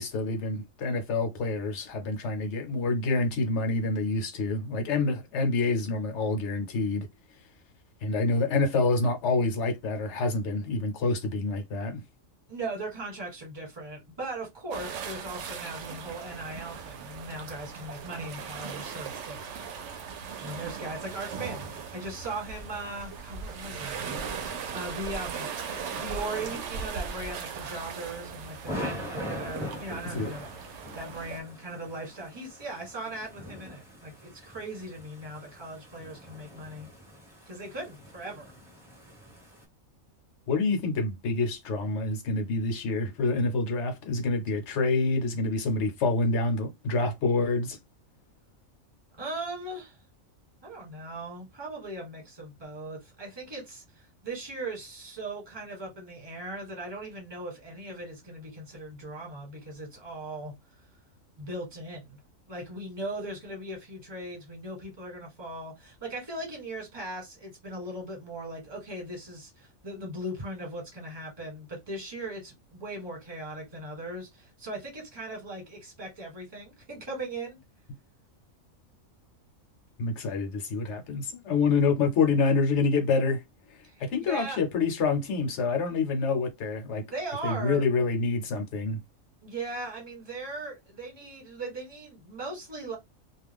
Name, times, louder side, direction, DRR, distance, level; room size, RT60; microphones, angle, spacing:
voice 1, 0.0-7.1 8.0-12.0 30.1-30.3 40.5-47.8 80.0-83.4 84.0-87.0 87.4-89.0, left 3 dB, 60° left, 1.0 m, -27 dB
voice 2, 12.5-19.6 20.0-24.0 24.7-36.9 37.5-38.5 49.2-50.0 50.6-60.6 61.4-62.2 62.5-77.6 83.8-84.6 87.1-87.9 89.4-93.0, right 2 dB, 20° right, 1.2 m, -39 dB
sound 1, 14.7-31.4, right 6 dB, 65° right, 0.8 m, -38 dB
sound 2, 20.2-39.6, equal, ahead, 1.0 m, -44 dB
2.4 x 2.3 x 3.4 m
omnidirectional pair, 1.4 m